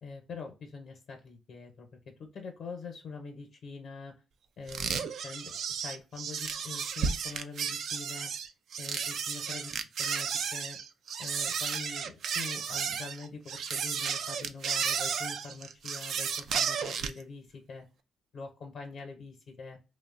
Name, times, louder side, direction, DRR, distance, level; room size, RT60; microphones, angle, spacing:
voice 1, 0.0-1.9 2.2-4.1 4.6-5.5 5.8-8.3 8.8-10.8 11.2-17.9 18.3-19.8, left 4 dB, 65° left, 2 dB, 0.6 m, -44 dB
sound 1, 4.7-17.2, right 6 dB, 65° right, 0.3 m, -33 dB
2.6 x 2.0 x 2.4 m, 0.30 s
cardioid pair, 90°, 0 cm